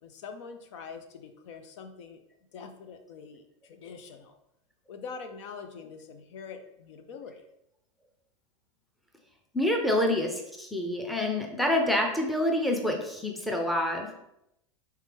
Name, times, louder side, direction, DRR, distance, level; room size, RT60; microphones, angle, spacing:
voice 1, 0.0-2.2 2.5-4.4 4.9-7.5, left 5 dB, 70° left, 8 dB, 0.6 m, -44 dB
voice 2, 9.5-14.1, left 1 dB, ahead, 2 dB, 0.5 m, -27 dB
4.9 x 3.2 x 3.4 m, 0.82 s
supercardioid pair, 135°, 16 cm